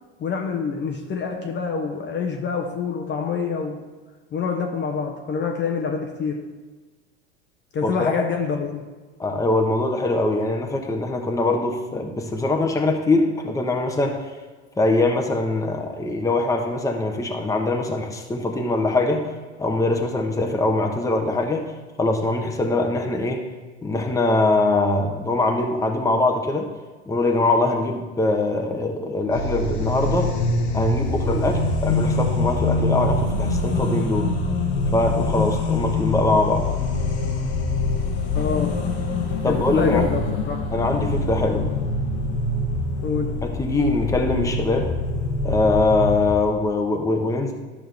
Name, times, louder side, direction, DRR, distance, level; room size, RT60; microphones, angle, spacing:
voice 1, 0.2-3.8 4.3-6.4 7.7-8.9 38.3-38.8 39.5-40.7 43.0-43.4, left 5 dB, 30° left, 2 dB, 1.1 m, -26 dB
voice 2, 9.2-14.2 14.8-19.3 19.6-21.7 22.0-23.5 23.8-26.7 27.1-30.3 30.7-34.3 34.9-36.6 39.4-40.1 40.7-41.7 43.6-44.9 45.4-47.5, left 2 dB, 10° left, 2 dB, 1.1 m, -22 dB
sound 1, 29.3-46.3, left 2 dB, 65° left, 1.5 m, -24 dB
12.0 x 6.2 x 3.5 m, 1.3 s
hypercardioid pair, 90°, 34 cm